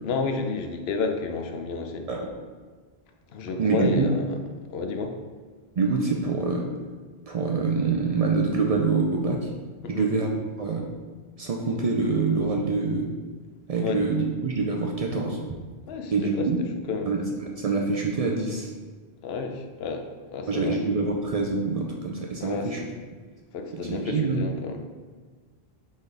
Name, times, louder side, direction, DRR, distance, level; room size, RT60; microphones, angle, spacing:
voice 1, 0.0-2.1 3.3-4.1 4.7-5.2 9.8-10.1 13.8-14.0 15.9-16.5 16.9-17.1 19.2-20.1 20.3-20.8 22.4-22.7 23.5-24.9, left 4 dB, 75° left, 5 dB, 0.8 m, -30 dB
voice 2, 3.6-4.1 5.8-6.7 7.3-9.5 9.9-10.3 10.6-10.9 11.4-13.1 13.7-15.4 16.1-16.6 17.1-18.7 20.5-22.8 23.7-24.5, right 4 dB, 55° right, 0 dB, 0.4 m, -25 dB
4.2 x 3.7 x 3.3 m, 1.5 s
omnidirectional pair, 1.1 m